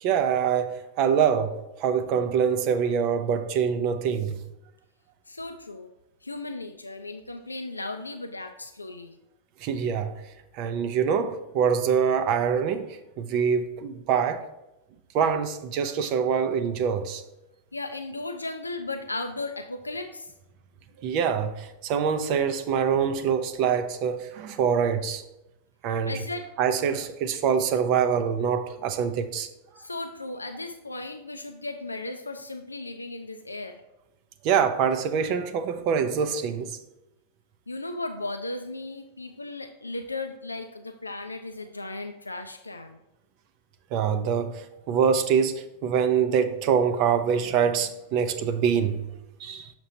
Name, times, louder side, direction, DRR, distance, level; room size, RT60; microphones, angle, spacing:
voice 1, 0.0-4.4 9.6-10.1 10.5-14.4 15.1-17.2 21.0-25.2 25.8-26.2 26.6-29.5 34.4-36.8 43.9-49.0 49.4-49.7, right 7 dB, 45° right, 0.5 m, -25 dB
voice 2, 5.3-5.9 6.2-9.1 17.7-20.3 26.0-26.5 29.8-33.8 37.7-43.0, left 2 dB, 85° left, 0.4 m, -36 dB
6.7 x 5.9 x 2.8 m
figure-of-eight pair, 90°, 0 cm